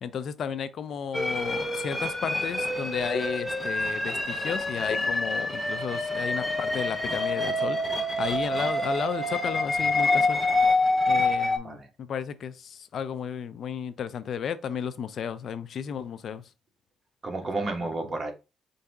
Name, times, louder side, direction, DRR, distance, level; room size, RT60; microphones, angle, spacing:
voice 1, 0.0-10.4 11.1-16.4, left 7 dB, 60° left, 0.4 m, -33 dB
sound 1, 1.1-11.6, left 2 dB, 10° left, 0.7 m, -27 dB
voice 2, 17.2-18.3, right 2 dB, 35° right, 1.1 m, -31 dB
4.6 x 2.6 x 3.4 m
cardioid pair, 90°, 0 cm